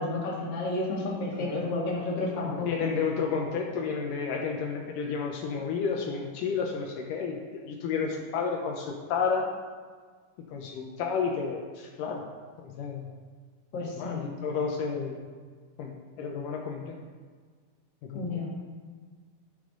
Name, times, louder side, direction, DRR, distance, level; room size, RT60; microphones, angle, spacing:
voice 1, 0.0-2.9 13.7-14.2 18.1-18.6, left 2 dB, 35° left, -5 dB, 2.5 m, -31 dB
voice 2, 1.4-1.7 2.4-9.5 10.5-12.2 12.6-13.0 13.8-15.2 15.8-15.9 16.2-16.9 18.0-18.4, left 5 dB, 80° left, 0 dB, 2.4 m, -31 dB
11.5 x 8.4 x 3.9 m, 1.6 s
omnidirectional pair, 3.9 m